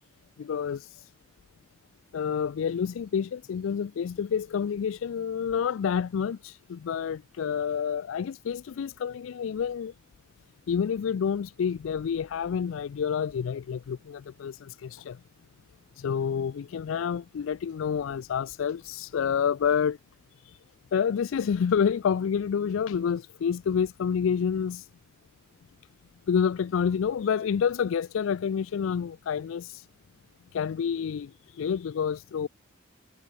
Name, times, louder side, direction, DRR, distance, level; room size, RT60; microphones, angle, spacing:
voice 1, 0.4-1.1 2.1-9.9 10.7-15.2 16.0-20.0 20.5-20.6 20.9-24.9 26.3-29.9 30.5-32.5, left 7 dB, 80° left, 0.4 m, -28 dB
head